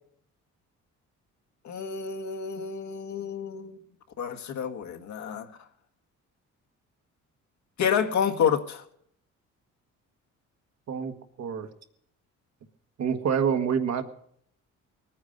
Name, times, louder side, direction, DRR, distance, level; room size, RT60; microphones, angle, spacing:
voice 1, 1.6-3.8 4.2-5.5 7.8-8.8, left 7 dB, 70° left, 5 dB, 1.7 m, -29 dB
voice 2, 10.9-11.7 13.0-14.0, right 7 dB, 60° right, 6 dB, 1.7 m, -27 dB
20.0 x 9.5 x 6.6 m, 0.68 s
cardioid pair, 90°, 30 cm